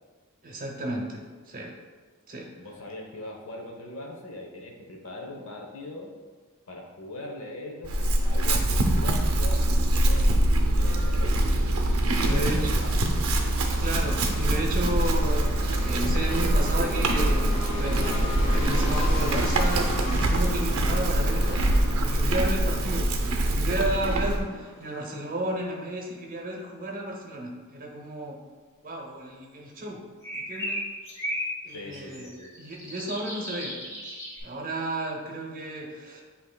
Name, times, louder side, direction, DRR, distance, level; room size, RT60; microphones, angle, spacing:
voice 1, 0.4-1.2 1.5-1.7 2.3-2.5 12.2-12.7 13.8-15.5 15.8-23.1 23.4-28.4 28.8-30.0 30.3-30.8 31.6-32.3 32.6-33.7 34.4-36.2, right 1 dB, 40° right, -1 dB, 0.7 m, -33 dB
voice 2, 2.6-6.1 6.7-10.3 10.8-11.8 12.2-12.9 31.7-32.5, left 2 dB, 80° left, 0 dB, 0.8 m, -40 dB
Chewing mastication / Livestock farm animals working animals, 7.8-24.4, right 1 dB, 80° right, 0.5 m, -24 dB
sound 1, 11.1-25.5, left 1 dB, 65° left, 1.4 m, -37 dB
sound 2, 30.2-34.4, equal, 15° left, 1.0 m, -35 dB
7.5 x 2.8 x 2.2 m, 1.4 s
head